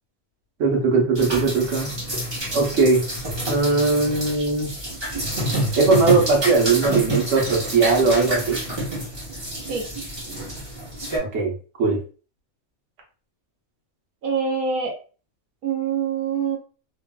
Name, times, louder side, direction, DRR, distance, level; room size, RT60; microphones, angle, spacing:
voice 1, 0.6-1.9 2.5-3.0 3.5-4.7 5.8-8.6 11.3-12.0, right 4 dB, 60° right, -1 dB, 1.2 m, -19 dB
sound 1, 1.1-11.2, right 1 dB, 20° right, 0.9 m, -28 dB
voice 2, 14.2-15.0 15.6-16.6, right 6 dB, 85° right, 2 dB, 1.1 m, -25 dB
2.9 x 2.5 x 2.2 m, 0.37 s
omnidirectional pair, 1.5 m